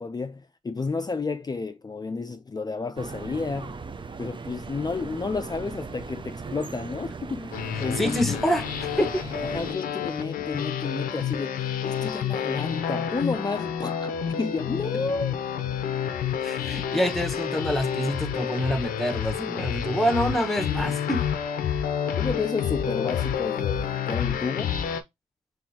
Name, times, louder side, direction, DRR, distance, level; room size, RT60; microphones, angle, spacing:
voice 1, 0.0-3.8 4.2-8.5 9.4-15.4 22.2-24.7, left 4 dB, 30° left, 0.5 m, -31 dB
sound 1, 3.0-9.8, right 4 dB, 35° right, 0.5 m, -38 dB
sound 2, 7.5-25.0, left 8 dB, 90° left, 0.5 m, -29 dB
voice 2, 8.0-9.2 16.4-21.3, equal, ahead, 1.1 m, -26 dB
4.4 x 3.2 x 2.8 m
supercardioid pair, 45°, 14 cm